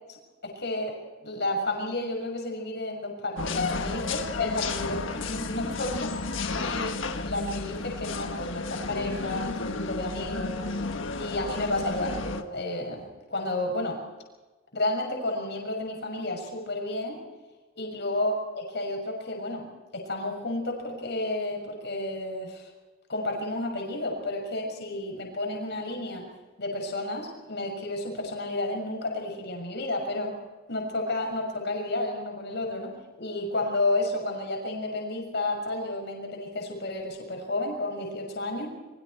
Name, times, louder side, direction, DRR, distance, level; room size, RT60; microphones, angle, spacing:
voice 1, 0.4-6.1 6.6-6.9 7.2-10.7 11.2-14.0 14.7-17.2 17.7-22.7 23.1-26.2 26.6-30.3 30.7-32.9 33.2-38.7, left 2 dB, 60° left, 1 dB, 6.5 m, -31 dB
sound 1, 3.4-12.4, left 3 dB, 75° left, 1.5 m, -32 dB
27.0 x 23.5 x 4.6 m, 1.2 s
head